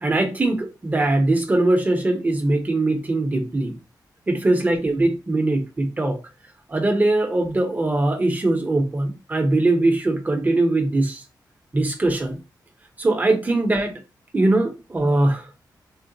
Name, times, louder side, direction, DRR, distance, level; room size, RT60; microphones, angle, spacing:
voice 1, 0.0-3.8 4.3-6.2 6.7-11.2 11.7-12.4 13.0-14.0 14.3-15.5, right 2 dB, 20° right, 0.7 m, -21 dB
3.7 x 2.0 x 2.6 m
wide cardioid pair, 125°, 7 cm